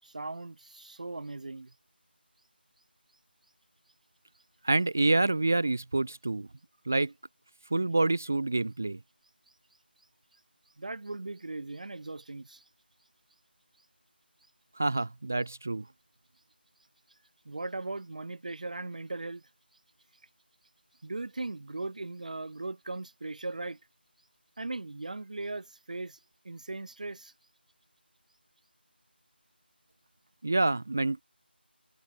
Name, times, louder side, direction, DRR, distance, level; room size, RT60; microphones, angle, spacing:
voice 1, 0.0-1.7 10.8-12.6 17.5-19.4 21.0-23.8 24.6-26.2 26.4-27.3, right 2 dB, 45° right, 3.5 m, -38 dB
voice 2, 4.6-6.5 6.9-7.1 7.7-9.0 14.8-15.9 30.4-31.2, right 2 dB, 10° right, 0.4 m, -27 dB
figure-of-eight pair, 180°, 6 cm